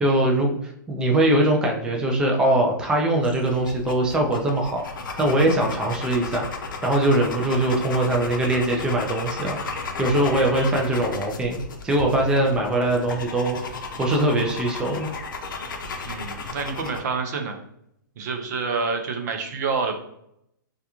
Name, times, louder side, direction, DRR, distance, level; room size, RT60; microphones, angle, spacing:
voice 1, 0.0-4.8 5.2-6.5 6.8-9.6 10.0-11.6 11.8-15.1, right 1 dB, 5° right, 0 dB, 0.4 m, -22 dB
sound 1, 3.2-17.0, left 3 dB, 75° left, 0.6 m, -34 dB
voice 2, 16.1-17.6 18.2-20.0, right 4 dB, 55° right, 5 dB, 0.6 m, -27 dB
2.4 x 2.2 x 2.9 m, 0.76 s
hypercardioid pair, 130°, 11 cm